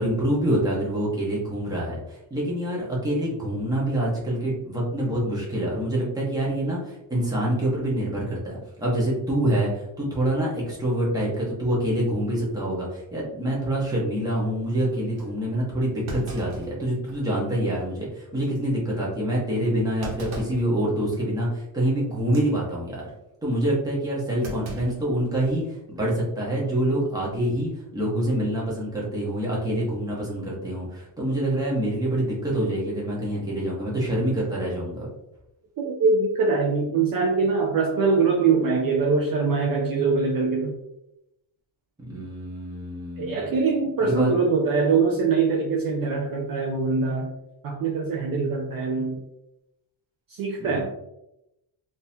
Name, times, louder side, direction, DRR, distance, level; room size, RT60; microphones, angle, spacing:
voice 1, 0.0-23.1 23.4-35.1 42.0-43.6 44.0-44.3 50.6-50.8, right 1 dB, 10° right, -5 dB, 0.9 m, -26 dB
Thump thud, 15.2-15.3 16.1-17.4 17.8-17.9 18.4-18.6 20.0-20.7 21.1-21.4 22.2-22.5 24.4-25.6 26.0-26.1 27.2-27.5, right 1 dB, 85° right, 1.1 m, -38 dB
voice 2, 35.8-40.8 43.2-47.3 47.6-49.2 50.3-50.8, right 4 dB, 50° right, 1 dB, 0.4 m, -23 dB
3.8 x 2.8 x 2.7 m, 0.87 s
cardioid pair, 175°, 45 cm